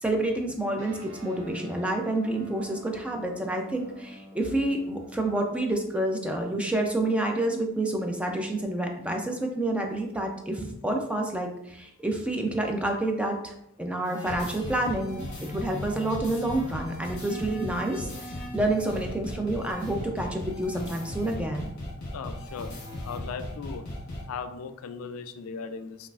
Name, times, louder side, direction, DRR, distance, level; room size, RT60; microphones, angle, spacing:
voice 1, 0.0-21.7, right 1 dB, 5° right, 2 dB, 0.3 m, -29 dB
Guitar, 0.7-10.7, equal, 35° right, 1.3 m, -49 dB
sound 1, 14.0-24.2, left 1 dB, 50° left, 1.5 m, -37 dB
voice 2, 22.1-22.7 23.0-23.8 24.3-26.1, left 5 dB, 80° left, 9 dB, 0.3 m, -37 dB
5.2 x 2.4 x 2.3 m, 0.83 s
head